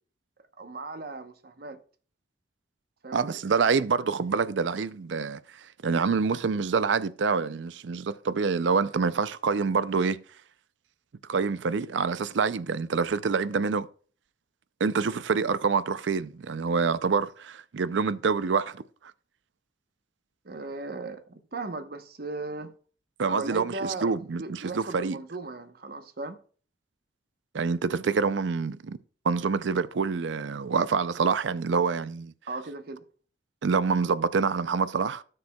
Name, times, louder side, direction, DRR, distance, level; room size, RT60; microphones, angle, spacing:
voice 1, 0.6-1.8 3.0-3.6 20.4-22.7 23.2-26.4 32.5-33.0, right 3 dB, 55° right, 1.0 m, -37 dB
voice 2, 3.1-10.2 11.3-13.9 14.8-18.8 23.2-25.2 27.5-29.0 29.2-32.3 33.6-35.2, right 5 dB, 80° right, 0.5 m, -26 dB
17.0 x 6.7 x 2.3 m
head